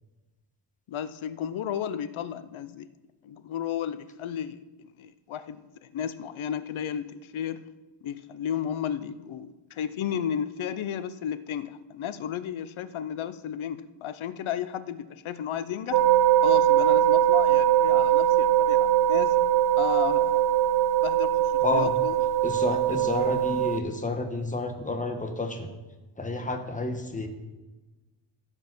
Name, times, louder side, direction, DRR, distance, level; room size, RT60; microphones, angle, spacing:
voice 1, 0.9-2.9 3.2-7.6 8.0-16.0 16.4-19.3 19.8-20.5 21.0-22.2 22.9-23.0, left 9 dB, 80° left, 14 dB, 0.7 m, -33 dB
sound 1, 15.9-23.8, right 11 dB, 55° right, 0.7 m, -21 dB
voice 2, 21.6-21.9 22.4-25.7 26.2-27.3, left 2 dB, 15° left, 5 dB, 1.1 m, -30 dB
15.0 x 5.3 x 6.1 m, 1.2 s
wide cardioid pair, 140°, 47 cm